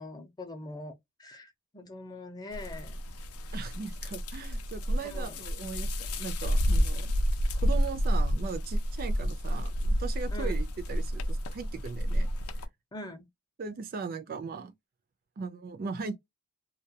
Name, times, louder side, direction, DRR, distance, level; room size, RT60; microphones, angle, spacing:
voice 1, 0.0-3.0 5.0-5.4 10.3-10.6 12.9-13.3, left 2 dB, 20° left, 0.5 m, -43 dB
sound 1, 2.5-12.7, equal, 75° left, 0.5 m, -30 dB
voice 2, 3.5-7.1 7.5-12.3 13.6-14.7 15.4-16.2, right 5 dB, 40° right, 0.4 m, -38 dB
2.2 x 2.2 x 2.7 m
head